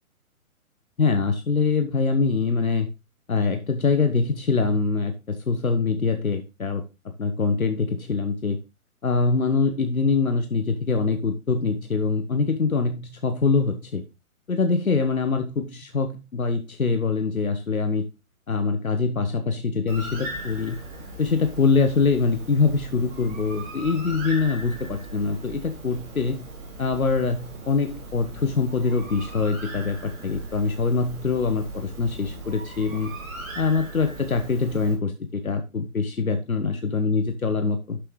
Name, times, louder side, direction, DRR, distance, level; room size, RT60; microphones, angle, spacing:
voice 1, 1.0-2.9 3.3-8.6 9.0-14.0 14.5-18.1 18.5-20.8 21.2-26.4 26.8-33.1 33.5-38.0, left 4 dB, 75° left, 7 dB, 1.3 m, -24 dB
Bird, 19.9-34.9, right 2 dB, 20° right, 3.3 m, -39 dB
11.5 x 6.8 x 3.3 m, 0.27 s
figure-of-eight pair, 135°, 43 cm